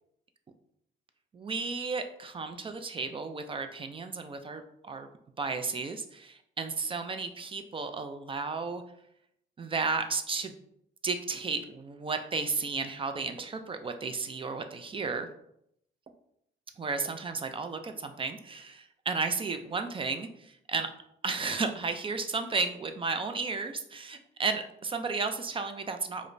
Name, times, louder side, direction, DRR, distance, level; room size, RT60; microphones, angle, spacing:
voice 1, 1.3-5.1 5.4-8.8 9.6-10.6 11.0-15.3 16.8-20.9 21.2-26.3, right 4 dB, 25° right, 7 dB, 0.3 m, -33 dB
4.8 x 2.1 x 2.6 m, 0.74 s
cardioid pair, 90°, 20 cm